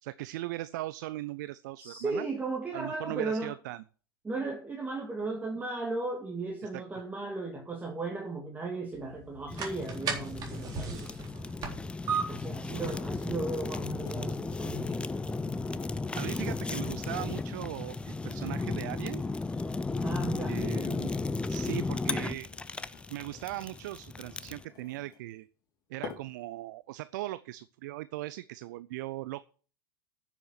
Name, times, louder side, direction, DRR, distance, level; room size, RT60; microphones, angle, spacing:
voice 1, 0.0-2.3 2.7-3.8 6.7-6.8 16.1-19.2 20.5-21.1 21.5-22.5 23.1-25.5 25.9-29.4, right 16 dB, 55° right, 16 dB, 0.5 m, -39 dB
voice 2, 1.8-3.5 4.2-11.1 12.3-15.0 20.0-20.6, right 3 dB, 15° right, 1 dB, 2.3 m, -36 dB
sound 1, 8.9-20.7, right 5 dB, 30° right, 3.7 m, -41 dB
Fire, 9.5-24.6, left 3 dB, 10° left, 0.5 m, -35 dB
sound 2, 14.1-14.3 14.6-19.8 20.4-25.3 26.0-26.5 27.0-27.2, left 6 dB, 30° left, 3.9 m, -51 dB
10.0 x 7.2 x 8.1 m, 0.41 s
figure-of-eight pair, 85°, 12 cm